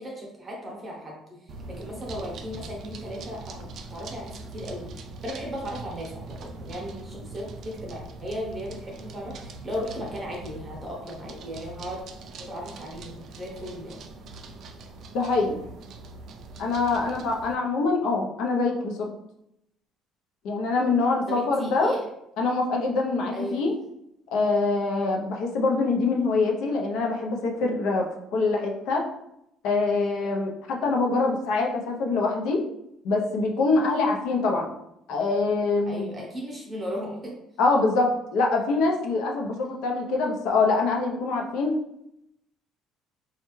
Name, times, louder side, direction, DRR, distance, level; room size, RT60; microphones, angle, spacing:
voice 1, 0.0-4.9 5.2-12.0 12.4-14.1 21.3-22.0 23.3-23.7 35.8-37.3, equal, 15° right, -2 dB, 0.8 m, -36 dB
sound 1, 1.5-17.5, right 3 dB, 45° right, 0.3 m, -42 dB
voice 2, 15.1-15.6 16.6-19.1 20.4-22.0 22.4-23.7 24.3-29.0 29.6-32.6 33.0-34.7 35.1-36.1 37.6-41.7, left 3 dB, 70° left, 1 dB, 0.6 m, -24 dB
4.3 x 2.3 x 3.0 m, 0.81 s
cardioid pair, 170°, 0 cm